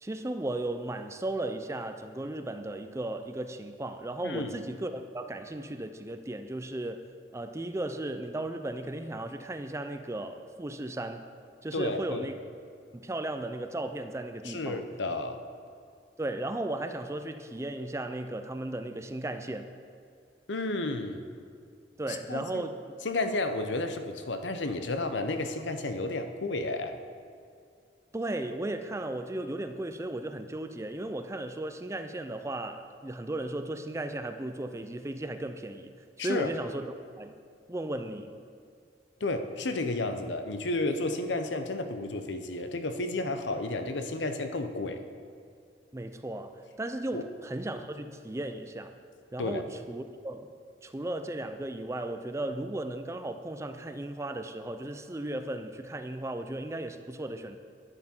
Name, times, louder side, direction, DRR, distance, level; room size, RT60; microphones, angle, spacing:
voice 1, 0.0-7.1 7.3-11.3 11.6-12.4 12.9-14.9 16.2-19.7 22.0-22.8 28.1-35.9 36.2-37.4 37.7-38.4 45.9-48.9 49.3-50.5 50.8-57.6, right 1 dB, 15° right, 8 dB, 0.4 m, -35 dB
voice 2, 11.7-12.3 14.4-15.4 20.5-21.2 22.3-22.7 23.0-26.9 36.2-36.5 39.2-45.0 47.1-47.2 49.4-49.6, left 2 dB, 90° left, 7 dB, 0.8 m, -32 dB
11.0 x 10.0 x 4.4 m, 2.3 s
head